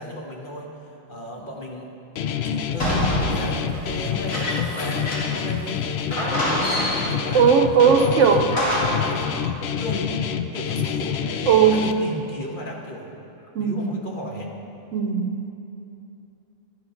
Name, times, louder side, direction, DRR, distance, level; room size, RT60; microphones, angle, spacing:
voice 1, 0.0-1.9 2.4-8.4 8.9-13.1 13.6-14.6, left 1 dB, 40° left, -1 dB, 1.4 m, -35 dB
Guitar, 2.2-11.9, left 8 dB, 65° left, 0.7 m, -27 dB
sound 1, 2.8-5.5 5.8-5.9 6.1-7.2 7.8-9.1, equal, 90° left, 2.9 m, -26 dB
voice 2, 7.3-8.5 11.5-11.9 13.6-14.1 14.9-15.5, right 6 dB, 70° right, 6 dB, 0.9 m, -18 dB
13.0 x 8.7 x 5.7 m, 2.8 s
omnidirectional pair, 1.4 m